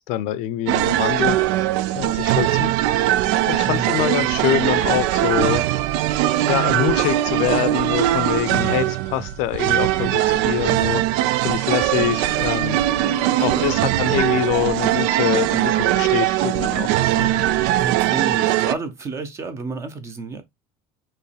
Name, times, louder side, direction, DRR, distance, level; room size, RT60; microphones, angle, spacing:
voice 1, 0.1-1.4 1.9-3.0 3.5-5.7 6.5-11.0 11.4-12.8 13.4-17.4, left 13 dB, 60° left, 0.5 m, -25 dB
sound 1, 0.7-18.7, right 14 dB, 80° right, 0.4 m, -20 dB
voice 2, 13.0-13.7 17.8-20.4, right 4 dB, 20° right, 0.7 m, -30 dB
4.5 x 3.1 x 3.3 m
cardioid pair, 180°, 14 cm